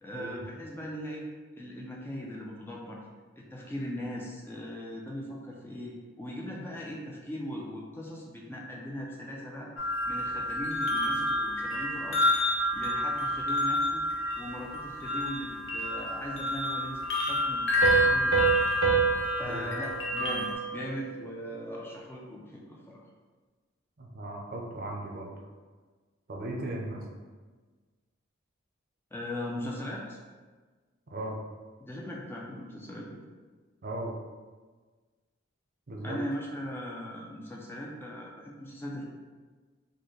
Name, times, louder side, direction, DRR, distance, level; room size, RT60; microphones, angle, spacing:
voice 1, 0.0-1.3 1.6-3.0 3.4-9.7 10.1-12.4 12.7-14.0 14.4-18.3 19.4-23.0 29.1-30.2 31.8-33.2 36.0-39.0, equal, 10° left, -2 dB, 0.3 m, -39 dB
sound 1, 9.8-20.5, left 1 dB, 70° left, 0.6 m, -29 dB
Piano, 17.8-21.2, right 6 dB, 85° right, 0.7 m, -28 dB
voice 2, 24.0-25.3 26.3-27.0 31.1-31.4 33.8-34.1 35.9-36.2, right 1 dB, 50° right, -1 dB, 0.5 m, -37 dB
4.0 x 2.1 x 3.2 m, 1.4 s
head